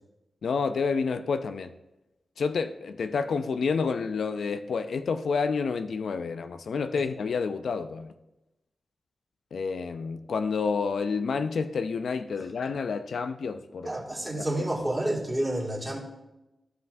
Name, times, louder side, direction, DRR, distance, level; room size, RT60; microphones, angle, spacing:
voice 1, 0.4-1.7 2.4-8.1 9.5-13.9 14.4-14.6, left 5 dB, 80° left, 0.4 m, -29 dB
voice 2, 13.8-16.0, right 1 dB, 10° right, 2.0 m, -29 dB
14.0 x 5.4 x 2.6 m
wide cardioid pair, 110°, 0 cm